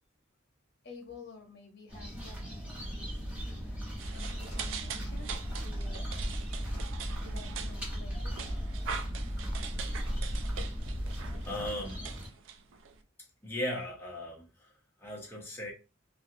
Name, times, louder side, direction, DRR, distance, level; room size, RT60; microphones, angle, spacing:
voice 1, 0.8-3.8 4.1-6.1 7.2-8.6, left 4 dB, 50° left, 2 dB, 0.9 m, -51 dB
sound 1, 1.9-12.3, equal, 10° right, 1.5 m, -41 dB
sound 2, 2.8-11.5, equal, 25° right, 1.5 m, -38 dB
sound 3, 4.0-13.0, right 5 dB, 70° right, 0.4 m, -43 dB
voice 2, 11.4-12.1 13.4-14.7 15.0-15.7, left 1 dB, 10° left, -2 dB, 0.7 m, -38 dB
3.2 x 2.4 x 2.6 m, 0.31 s
head